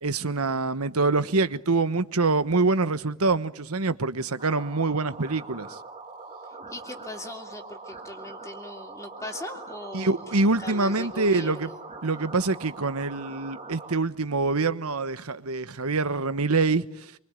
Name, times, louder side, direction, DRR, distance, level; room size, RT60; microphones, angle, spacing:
voice 1, 0.0-5.8 9.9-11.7 12.0-16.9, right 3 dB, 70° right, 1.2 m, -25 dB
sound 1, 4.4-14.0, right 3 dB, 30° right, 2.5 m, -42 dB
voice 2, 6.7-10.2 10.6-11.8, left 1 dB, 15° left, 2.7 m, -39 dB
26.0 x 24.5 x 9.1 m
head